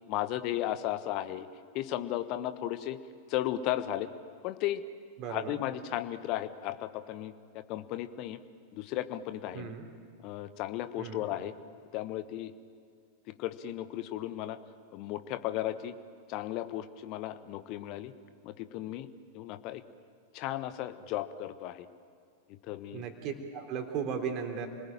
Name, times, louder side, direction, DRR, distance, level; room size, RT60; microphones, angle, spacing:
voice 1, 0.1-1.5 1.7-3.0 3.3-4.1 4.4-4.8 5.3-8.4 8.7-9.7 10.2-11.5 11.9-12.5 13.3-14.6 14.9-16.0 16.3-18.1 18.4-19.1 19.3-19.8 20.3-21.9 22.6-23.1, left 13 dB, 40° left, 12 dB, 1.3 m, -35 dB
voice 2, 5.2-5.6 9.5-9.9 11.0-11.2 22.9-24.7, right 7 dB, 35° right, 5 dB, 3.4 m, -36 dB
28.0 x 20.0 x 9.1 m, 2.2 s
figure-of-eight pair, 90°, 0 cm